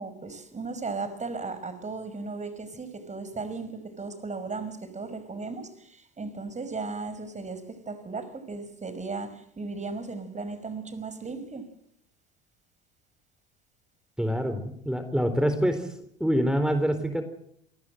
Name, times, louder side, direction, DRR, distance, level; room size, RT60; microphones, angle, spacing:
voice 1, 0.0-11.7, right 3 dB, 25° right, 12 dB, 5.6 m, -36 dB
voice 2, 14.2-15.9 16.2-17.2, equal, ahead, 9 dB, 4.0 m, -25 dB
28.5 x 19.5 x 7.9 m, 0.73 s
hypercardioid pair, 70°, 29 cm